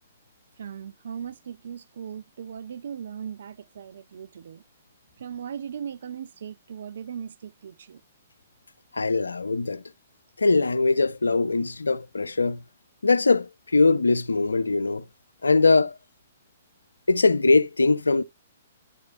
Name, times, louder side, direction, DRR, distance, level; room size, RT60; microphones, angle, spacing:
voice 1, 0.6-4.6 5.2-8.0, right 8 dB, 55° right, 0.4 m, -38 dB
voice 2, 8.9-9.8 10.4-12.6 13.0-15.0 15.4-15.9 17.1-18.2, left 3 dB, 75° left, 0.3 m, -21 dB
11.0 x 4.6 x 2.3 m
figure-of-eight pair, 115°, 0 cm